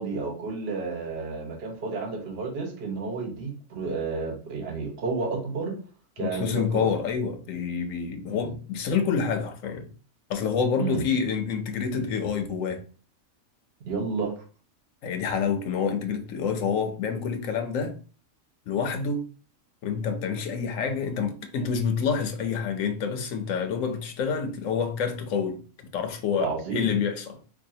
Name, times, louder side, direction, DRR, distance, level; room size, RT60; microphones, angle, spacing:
voice 1, 0.0-5.8 6.2-6.9 8.3-8.5 10.8-11.0 13.8-14.4 26.4-26.9, right 4 dB, 55° right, 1.0 m, -31 dB
voice 2, 6.2-9.9 10.3-12.8 15.0-18.0 18.7-19.2 19.8-25.6 25.9-27.4, left 6 dB, 75° left, 1.0 m, -28 dB
4.6 x 2.3 x 2.7 m
omnidirectional pair, 1.4 m